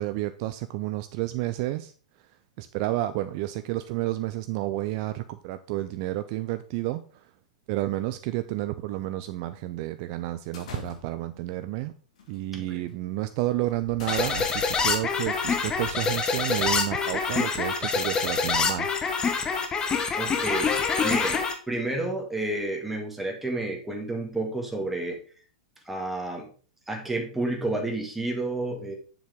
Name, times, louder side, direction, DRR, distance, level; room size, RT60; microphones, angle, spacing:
voice 1, 0.0-1.9 2.6-7.2 7.7-11.9 12.3-18.9, right 16 dB, 45° right, 11 dB, 0.5 m, -30 dB
sound 1, 10.5-11.4 12.2-12.4 12.9-13.0 13.7-16.6, left 5 dB, 60° left, 2.4 m, -42 dB
voice 2, 12.5-12.8 20.2-25.2 25.9-26.5 26.9-28.9, right 2 dB, 5° right, 1 dB, 1.9 m, -30 dB
sound 2, 14.1-21.5, left 5 dB, 20° left, 1.2 m, -26 dB
7.3 x 7.2 x 3.6 m, 0.40 s
figure-of-eight pair, 100°, 4 cm